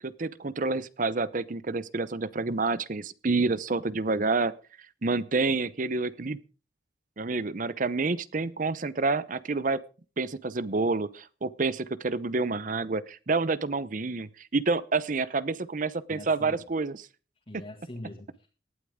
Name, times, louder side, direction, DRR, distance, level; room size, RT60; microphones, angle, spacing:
voice 1, 0.0-4.5 5.0-6.4 7.2-9.8 10.2-17.1, right 3 dB, 45° right, 17 dB, 0.7 m, -28 dB
voice 2, 16.1-16.7 17.5-18.5, left 1 dB, 30° left, 1 dB, 2.1 m, -43 dB
18.0 x 12.0 x 3.6 m, 0.36 s
head